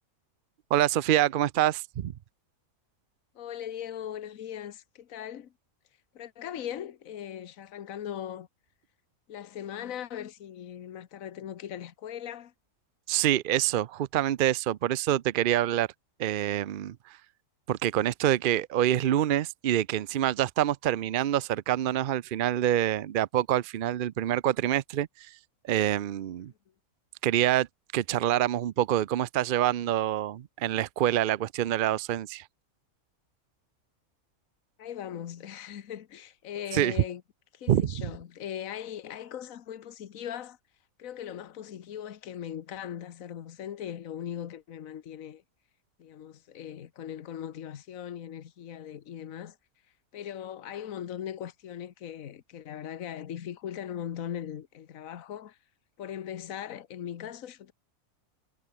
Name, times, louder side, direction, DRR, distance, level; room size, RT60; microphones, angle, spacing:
voice 1, 0.7-2.1 13.1-15.9 16.2-17.2 17.7-25.4 25.7-26.5 27.2-27.7 27.9-32.4 36.7-36.9 37.7-37.9, right 12 dB, 70° right, 0.5 m, -26 dB
voice 2, 3.3-5.5 6.1-8.5 9.3-12.5 34.8-37.2 37.5-40.6 41.0-45.4 46.0-49.6 50.1-55.6 56.0-57.7, left 10 dB, 70° left, 1.4 m, -39 dB
omnidirectional pair, 1.5 m